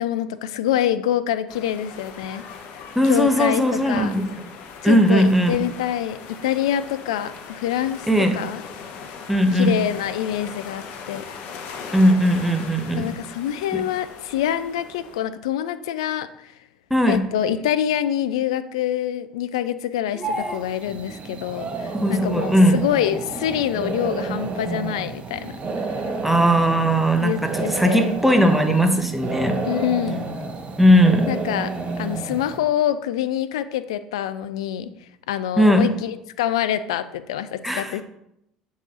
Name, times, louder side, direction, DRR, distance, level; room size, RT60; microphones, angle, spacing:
voice 1, 0.0-2.4 3.0-4.1 4.8-8.1 8.3-8.6 9.5-11.2 12.9-16.5 17.1-25.6 27.2-28.1 29.6-30.2 31.2-34.9 35.3-38.0, left 11 dB, 75° left, 13 dB, 0.4 m, -26 dB
sound 1, 1.5-15.2, left 6 dB, 60° left, 0.8 m, -39 dB
voice 2, 2.9-4.5 4.8-5.6 8.1-8.4 9.3-9.7 11.9-13.1 13.7-13.8 16.9-17.2 20.1-20.6 21.9-22.8 26.2-29.6 30.8-31.3 35.6-35.9 37.6-38.0, equal, 5° right, 5 dB, 1.0 m, -18 dB
sound 2, 20.2-32.6, right 3 dB, 40° right, 0.9 m, -30 dB
7.4 x 4.1 x 3.7 m, 0.80 s
hypercardioid pair, 65°, 3 cm